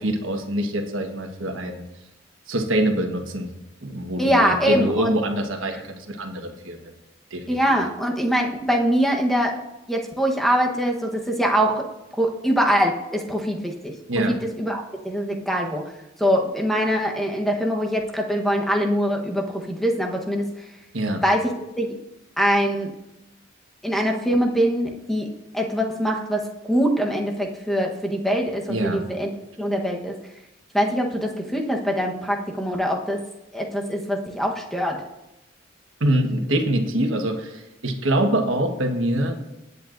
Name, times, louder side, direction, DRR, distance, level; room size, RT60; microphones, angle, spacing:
voice 1, 0.0-1.8 2.5-3.5 3.8-6.9 7.3-7.8 14.1-14.3 20.9-21.2 28.7-29.0 36.0-39.4, right 1 dB, 80° right, 3 dB, 1.4 m, -24 dB
voice 2, 4.2-5.1 5.7-5.8 7.5-9.6 9.9-11.8 12.2-13.9 14.2-15.8 16.2-20.5 21.2-21.9 22.4-22.9 23.8-25.3 25.5-29.3 29.6-30.1 30.7-33.2 33.5-35.0, equal, ahead, 1 dB, 1.1 m, -23 dB
18.5 x 8.2 x 2.6 m, 0.94 s
head